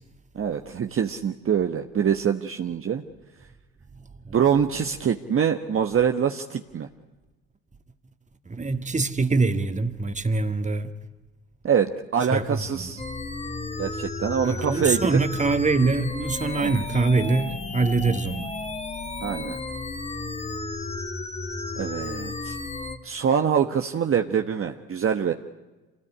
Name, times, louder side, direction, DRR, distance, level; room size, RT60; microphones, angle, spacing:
voice 1, 0.3-3.0 4.3-6.9 11.6-13.0 13.8-15.0 16.6-16.7 19.2-19.6 21.8-22.6 23.0-25.3, right 7 dB, 40° right, 1.3 m, -24 dB
voice 2, 8.5-10.9 12.3-12.9 14.4-18.6, right 3 dB, 20° right, 2.1 m, -24 dB
sound 1, 13.0-23.0, left 3 dB, 20° left, 2.0 m, -33 dB
26.5 x 19.0 x 10.0 m
hypercardioid pair, 70°, 33 cm